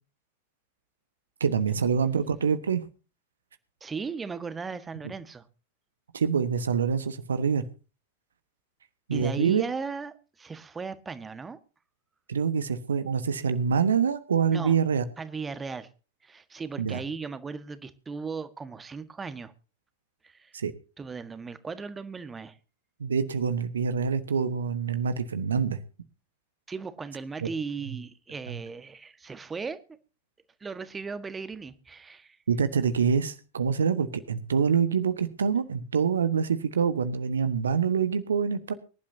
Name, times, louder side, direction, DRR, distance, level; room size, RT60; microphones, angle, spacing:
voice 1, 1.4-2.8 6.1-7.6 9.1-9.6 12.3-15.0 16.8-17.0 20.5-20.7 23.0-25.8 32.5-38.7, right 6 dB, 70° right, 12 dB, 1.3 m, -26 dB
voice 2, 3.8-5.4 9.1-11.6 14.5-14.7 15.2-15.9 16.2-19.5 20.2-20.6 21.0-22.6 26.7-29.8 30.6-32.4, right 5 dB, 15° right, 12 dB, 1.5 m, -37 dB
24.5 x 11.5 x 2.7 m, 0.35 s
figure-of-eight pair, 90°, 0 cm